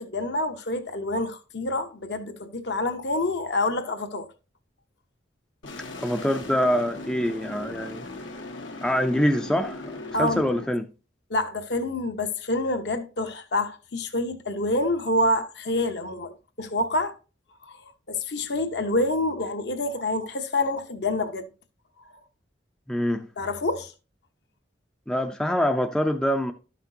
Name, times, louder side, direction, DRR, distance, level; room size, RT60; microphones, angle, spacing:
voice 1, 0.0-4.3 10.1-10.5 11.3-17.2 17.6-17.8 18.1-21.5 23.4-23.9, left 2 dB, 60° left, 0.9 m, -27 dB
sound 1, 5.6-10.7, left 2 dB, 90° left, 1.3 m, -38 dB
voice 2, 6.0-8.1 8.8-10.9 22.9-23.3 25.1-26.5, equal, 5° left, 0.4 m, -25 dB
12.0 x 5.9 x 2.7 m
head